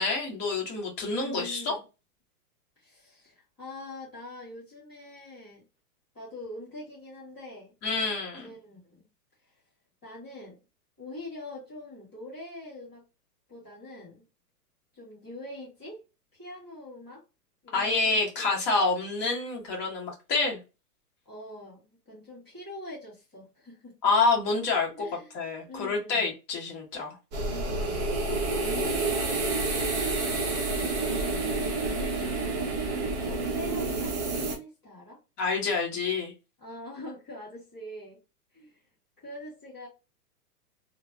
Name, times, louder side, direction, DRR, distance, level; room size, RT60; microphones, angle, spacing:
voice 1, 0.0-1.8 7.8-8.5 17.7-20.6 24.0-25.1 25.3-27.1 28.6-29.0 35.4-36.3, left 3 dB, 20° left, -1 dB, 1.0 m, -27 dB
voice 2, 1.2-1.8 2.8-5.6 6.1-7.7 8.2-9.0 9.4-9.5 10.0-10.6 11.0-13.0 13.5-14.2 14.9-16.0 16.3-17.2 17.6-18.2 18.5-18.7 21.2-24.1 24.9-25.4 25.6-26.3 27.4-28.0 28.7-29.4 29.7-31.5 32.2-32.7 33.2-35.2 36.6-38.2 38.5-38.8 39.2-39.9, left 1 dB, ahead, -19 dB, 0.3 m, -44 dB
sound 1, 27.3-34.5, right 3 dB, 25° right, 0.8 m, -29 dB
3.1 x 2.1 x 2.3 m, 0.28 s
hypercardioid pair, 140°, 47 cm